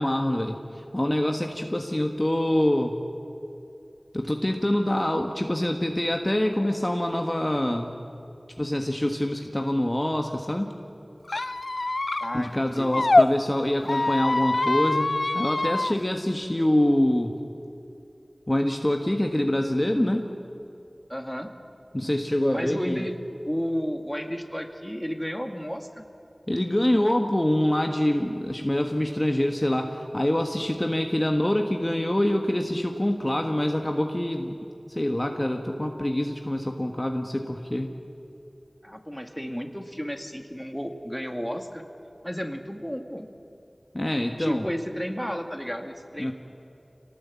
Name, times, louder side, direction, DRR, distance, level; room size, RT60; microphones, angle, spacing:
voice 1, 0.0-2.9 4.1-7.9 8.6-10.7 12.3-17.3 18.5-20.3 21.9-23.1 26.5-34.6 34.9-37.9 43.9-44.6 46.2-46.3, left 1 dB, 25° left, 3 dB, 1.5 m, -25 dB
Squeak, 11.3-13.3 13.8-15.9, left 2 dB, 75° left, 0.5 m, -24 dB
voice 2, 12.2-13.1 21.1-21.5 22.5-23.1 23.4-26.0 38.8-41.8 42.2-43.3 44.4-46.3, equal, 5° left, 5 dB, 2.1 m, -32 dB
26.0 x 18.5 x 8.5 m, 2.7 s
wide cardioid pair, 45°, 0 cm